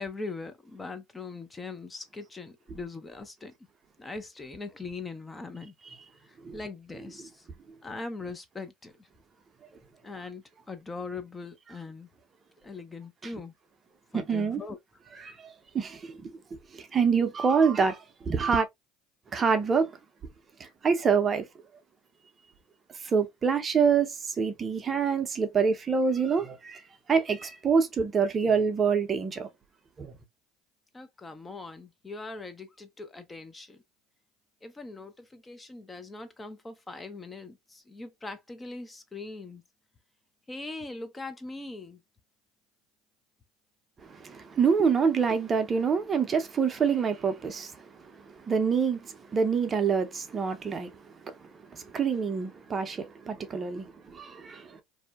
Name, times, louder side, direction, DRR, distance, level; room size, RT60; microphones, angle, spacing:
voice 1, 0.0-3.5 4.0-5.7 6.2-7.5 7.8-9.1 10.0-12.1 12.6-13.5 14.1-14.8 30.9-33.8 34.6-39.6 40.5-42.0, left 3 dB, 20° left, 0.4 m, -41 dB
voice 2, 14.1-14.6 15.2-16.4 16.7-18.7 19.3-20.0 20.6-21.5 23.0-26.8 27.1-29.5 30.0-30.2 44.0-50.9 51.2-51.3 51.7-54.8, right 6 dB, 30° right, 0.5 m, -26 dB
2.6 x 2.1 x 2.3 m
hypercardioid pair, 85°, 0 cm